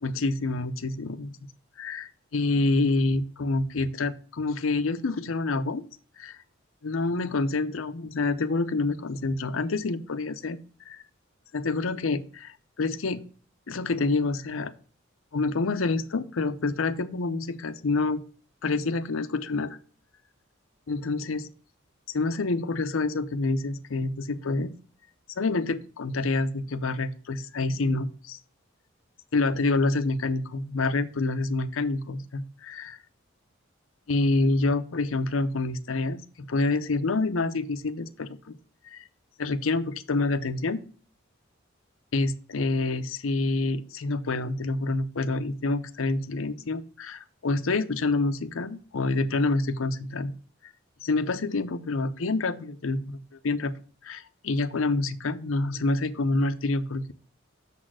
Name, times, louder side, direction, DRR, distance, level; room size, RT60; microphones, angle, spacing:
voice 1, 0.0-1.3 1.8-5.8 6.2-6.4 6.8-10.6 10.9-11.0 11.5-13.2 13.7-14.7 15.3-18.2 18.6-19.8 20.9-21.5 22.1-24.7 25.4-28.4 29.3-33.0 34.1-38.6 38.8-39.1 39.4-40.8 42.1-50.3 50.6-50.7 51.0-53.7 54.0-57.1, left 3 dB, 75° left, 13 dB, 0.6 m, -27 dB
6.9 x 4.3 x 6.2 m, 0.41 s
head